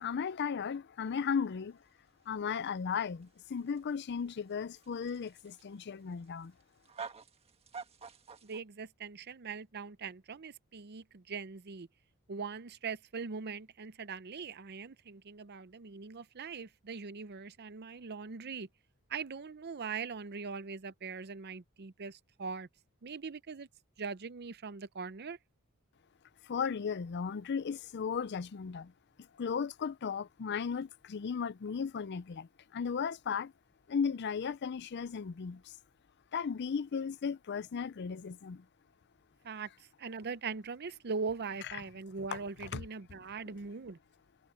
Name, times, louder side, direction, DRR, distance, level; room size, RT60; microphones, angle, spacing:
voice 1, 0.0-1.8 2.3-6.5 26.4-28.9 29.4-33.5 33.9-35.7 36.3-38.6 42.3-42.8, left 6 dB, 50° left, 0.4 m, -36 dB
sound 1, 1.0-8.6, right 5 dB, 30° right, 1.6 m, -50 dB
voice 2, 8.4-11.9 12.3-18.7 19.1-22.7 23.0-23.7 24.0-25.4 39.4-39.7 40.0-44.0, right 5 dB, 50° right, 0.7 m, -41 dB
head